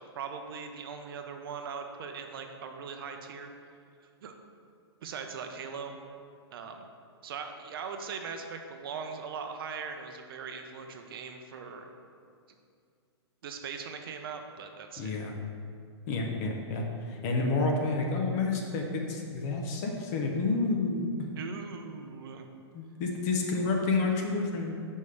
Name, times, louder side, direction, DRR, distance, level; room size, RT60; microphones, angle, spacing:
voice 1, 0.0-3.5 4.2-4.3 5.0-6.0 6.5-6.8 7.2-11.9 13.4-15.2 21.4-22.5, right 6 dB, 55° right, 5 dB, 0.6 m, -40 dB
voice 2, 15.0-15.3 16.1-21.1 22.7-24.8, left 3 dB, 35° left, 1 dB, 0.8 m, -29 dB
5.4 x 5.3 x 3.3 m, 2.3 s
hypercardioid pair, 145°, 14 cm